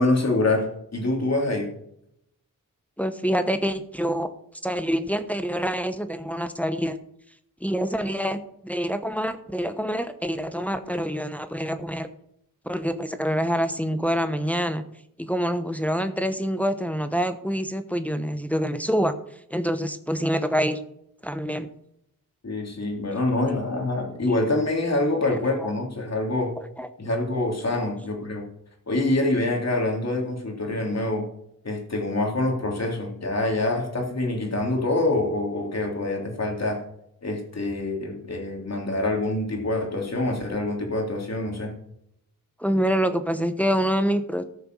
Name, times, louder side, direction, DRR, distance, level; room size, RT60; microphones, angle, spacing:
voice 1, 0.0-1.7 22.4-26.5 27.0-28.5 28.9-31.3 31.6-36.8 37.2-41.7, left 2 dB, 50° left, 1 dB, 3.3 m, -25 dB
voice 2, 3.0-4.3 4.6-7.0 7.6-12.1 12.7-14.8 15.2-19.1 19.5-20.8 21.2-21.7 25.6-25.7 26.6-26.9 27.8-27.9 42.6-44.4, equal, 5° left, 9 dB, 0.9 m, -26 dB
14.0 x 6.8 x 6.2 m, 0.74 s
wide cardioid pair, 85°, 34 cm